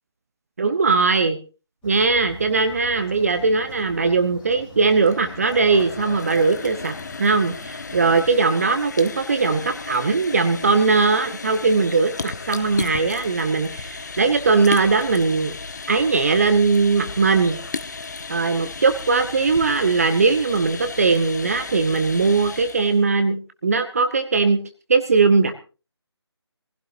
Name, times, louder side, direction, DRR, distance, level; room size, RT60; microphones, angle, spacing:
voice 1, 0.6-1.4 1.8-6.9 7.2-15.5 15.9-17.6 18.3-24.6 24.9-25.5, right 4 dB, 35° right, 9 dB, 1.0 m, -20 dB
sound 1, 1.8-8.3, left 2 dB, 10° left, 3.1 m, -43 dB
sound 2, 4.9-23.0, left 4 dB, 40° left, 1.0 m, -35 dB
23.0 x 15.5 x 2.7 m, 0.32 s
figure-of-eight pair, 155°, 14 cm